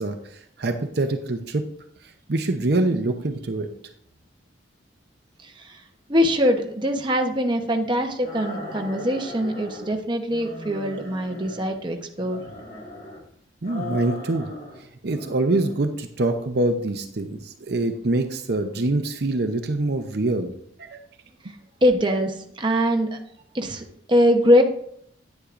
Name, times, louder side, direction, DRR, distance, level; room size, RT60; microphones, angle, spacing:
voice 1, 0.0-1.6 2.3-3.7 13.6-14.5 15.0-20.5 20.8-21.0, right 2 dB, 60° right, 6 dB, 0.7 m, -25 dB
voice 2, 5.4-5.8 6.1-12.4 21.8-23.2 23.5-24.6, equal, 25° right, 3 dB, 0.9 m, -22 dB
sound 1, 8.2-9.9 10.3-11.8 12.1-13.2 13.6-14.8 15.1-15.8, left 1 dB, 50° left, 4.0 m, -38 dB
9.9 x 9.3 x 2.5 m, 0.69 s
head